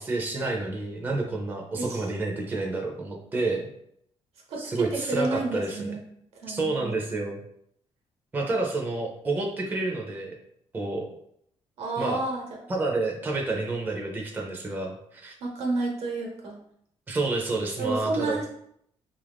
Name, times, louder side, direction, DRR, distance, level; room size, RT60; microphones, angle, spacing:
voice 1, 0.0-3.7 4.6-5.9 6.5-7.4 8.3-10.3 10.7-11.1 12.0-12.2 12.7-15.3 17.1-18.5, right 2 dB, 20° right, 0 dB, 0.4 m, -29 dB
voice 2, 1.8-2.1 4.5-6.0 6.3-6.9 11.8-12.6 15.4-16.6 17.8-18.5, right 3 dB, 75° right, 0 dB, 1.0 m, -30 dB
3.3 x 2.4 x 3.4 m, 0.70 s
cardioid pair, 140°, 11 cm